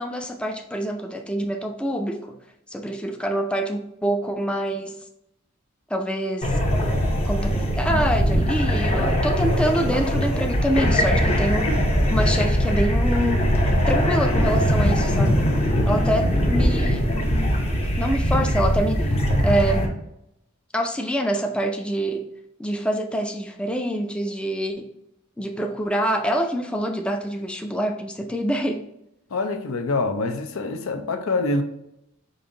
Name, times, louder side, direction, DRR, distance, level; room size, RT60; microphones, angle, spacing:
voice 1, 0.0-2.3 2.7-5.0 5.9-6.6 7.2-11.8 12.1-13.5 13.9-15.4 15.9-19.1 19.4-20.0 20.7-22.3 22.6-24.9 25.4-28.8, equal, 5° left, 3 dB, 0.3 m, -26 dB
sound 1, 6.4-19.9, equal, 30° left, 0.7 m, -21 dB
voice 2, 29.3-31.6, left 3 dB, 80° left, 7 dB, 0.6 m, -25 dB
5.4 x 2.6 x 3.8 m, 0.83 s
head